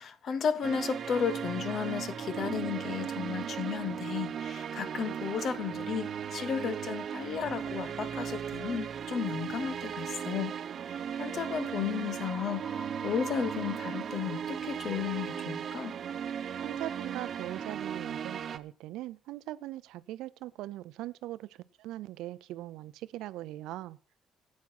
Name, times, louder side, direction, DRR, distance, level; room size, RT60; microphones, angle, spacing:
voice 1, 0.0-10.6 10.9-16.0, left 7 dB, 60° left, 1.3 m, -34 dB
sound 1, 0.6-18.6, right 8 dB, 55° right, 0.8 m, -37 dB
sound 2, 12.2-16.1, right 2 dB, 10° right, 1.6 m, -47 dB
voice 2, 16.6-24.0, right 15 dB, 85° right, 0.5 m, -41 dB
12.5 x 8.4 x 5.9 m
cardioid pair, 80°, 0 cm